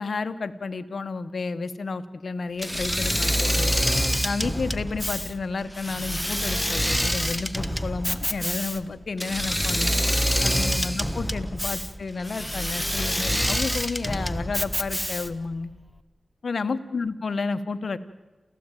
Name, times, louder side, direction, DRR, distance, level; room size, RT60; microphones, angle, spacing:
voice 1, 0.0-3.8 4.2-10.0 10.4-15.7 16.4-18.0, left 4 dB, 70° left, 11 dB, 1.2 m, -31 dB
Engine / Mechanisms, 2.6-15.5, equal, 5° left, 1.4 m, -26 dB
28.0 x 15.5 x 9.1 m, 1.2 s
cardioid pair, 55°, 0 cm